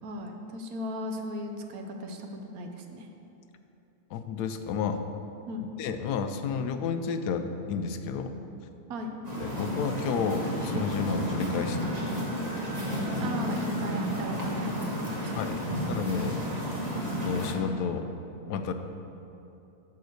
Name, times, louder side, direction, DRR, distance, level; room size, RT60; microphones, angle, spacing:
voice 1, 0.0-3.1 5.5-5.7 8.9-9.1 13.2-15.9, equal, 65° right, 4 dB, 1.1 m, -37 dB
voice 2, 4.1-5.0 5.8-8.4 9.4-12.0 15.4-16.4 17.2-18.1 18.5-18.7, left 6 dB, 80° left, 8 dB, 1.1 m, -31 dB
sound 1, 9.2-17.5, equal, 25° right, 1.6 m, -32 dB
11.0 x 3.8 x 6.5 m, 2.8 s
omnidirectional pair, 1.7 m